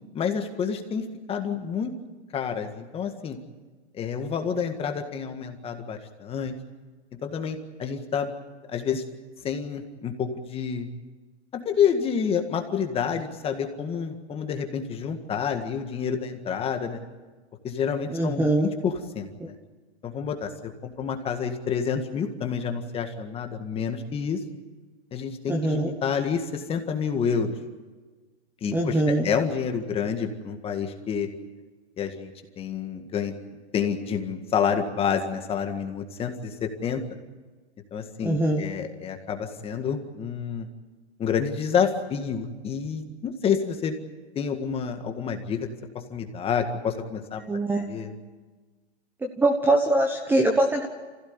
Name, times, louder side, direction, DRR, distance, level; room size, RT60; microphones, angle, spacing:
voice 1, 0.1-1.9 2.3-3.4 3.9-6.5 7.2-8.3 8.7-9.0 9.4-10.9 11.5-17.0 17.6-19.6 20.0-24.4 25.1-27.6 28.6-31.3 32.0-32.3 32.6-33.3 33.7-37.0 37.9-40.7 41.2-44.0 44.4-45.7 45.9-47.4 47.8-48.1, left 7 dB, 15° left, 5 dB, 1.8 m, -28 dB
voice 2, 18.1-18.7 25.5-25.9 28.7-29.3 38.2-38.6 47.5-47.8 49.2-50.9, right 1 dB, 5° right, 4 dB, 1.1 m, -23 dB
25.5 x 16.0 x 9.7 m, 1.3 s
hypercardioid pair, 145°, 33 cm